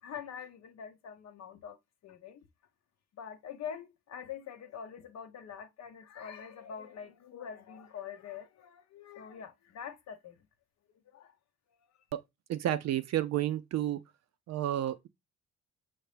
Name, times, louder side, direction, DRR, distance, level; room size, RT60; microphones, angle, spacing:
voice 1, 0.0-1.8 2.0-2.4 3.1-10.4 11.1-11.4, left 8 dB, 60° left, 0.7 m, -45 dB
voice 2, 12.5-14.0 14.5-15.1, right 12 dB, 60° right, 0.5 m, -31 dB
5.7 x 2.7 x 3.3 m
cardioid pair, 90°, 30 cm